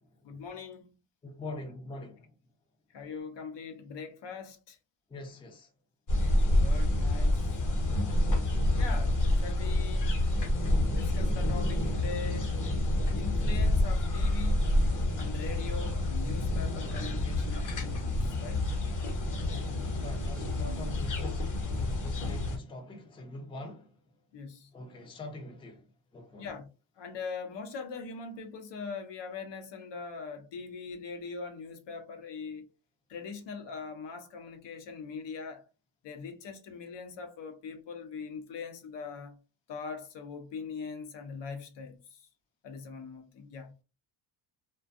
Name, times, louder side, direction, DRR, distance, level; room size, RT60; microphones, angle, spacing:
voice 1, 0.2-0.9 2.9-4.8 6.5-7.4 8.7-10.1 10.9-12.5 13.1-14.6 15.2-18.6 24.3-24.7 26.4-26.7 27.0-32.7 33.1-35.6 36.0-39.4 39.7-42.3 42.6-43.7, left 5 dB, 60° left, 0.7 m, -41 dB
voice 2, 1.2-2.3 5.1-5.7 20.0-23.9 24.7-25.8 26.1-26.5, left 2 dB, 10° left, 0.5 m, -43 dB
sound 1, 6.1-22.6, left 1 dB, 40° left, 1.0 m, -28 dB
2.5 x 2.3 x 2.4 m
cardioid pair, 115°, 49 cm